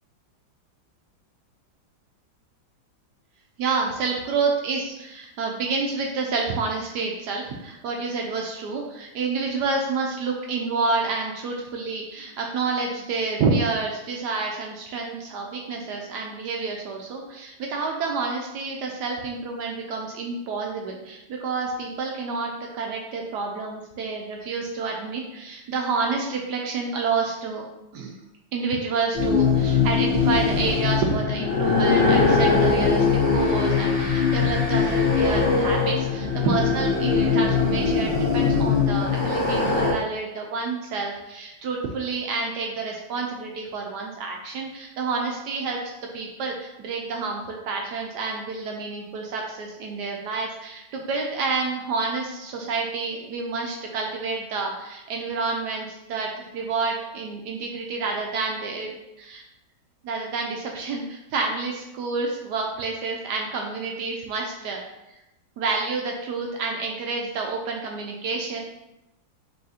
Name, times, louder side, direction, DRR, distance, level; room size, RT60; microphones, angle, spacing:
voice 1, 3.6-27.6 27.9-28.2 28.5-33.1 33.3-59.4 60.0-64.8 65.6-68.6, right 4 dB, 75° right, 1 dB, 1.0 m, -29 dB
sound 1, 29.1-39.9, left 5 dB, 35° left, 1.0 m, -21 dB
5.6 x 2.7 x 2.7 m, 0.92 s
omnidirectional pair, 2.2 m